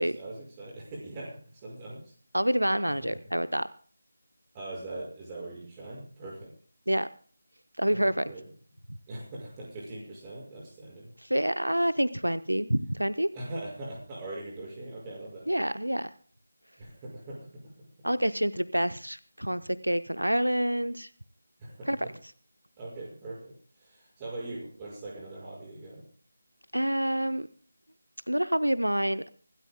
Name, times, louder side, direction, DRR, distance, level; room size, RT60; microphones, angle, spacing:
voice 1, 0.0-2.0 3.0-3.2 4.5-6.5 7.9-8.5 9.1-11.1 13.3-15.5 16.8-17.6 21.6-22.2 22.8-26.0, right 2 dB, 15° right, -4 dB, 5.6 m, -41 dB
voice 2, 2.3-3.7 6.9-7.1 7.8-8.3 11.2-13.3 15.5-16.1 18.0-21.1 21.9-22.0 26.7-27.5 28.3-29.2, equal, 80° right, 14 dB, 0.7 m, -27 dB
25.0 x 12.5 x 2.2 m, 0.44 s
figure-of-eight pair, 160°, 0 cm